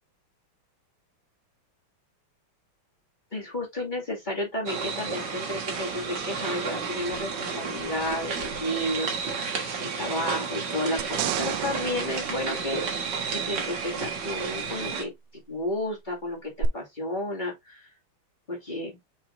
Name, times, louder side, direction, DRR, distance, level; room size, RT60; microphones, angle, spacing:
voice 1, 3.3-12.8 13.3-17.9 18.5-19.0, left 1 dB, 20° left, 2.4 m, -32 dB
sound 1, 4.7-15.0, right 5 dB, 55° right, 2.1 m, -32 dB
sound 2, 11.0-13.5 16.6-16.7, right 13 dB, 75° right, 1.1 m, -32 dB
6.8 x 5.4 x 2.6 m
omnidirectional pair, 2.4 m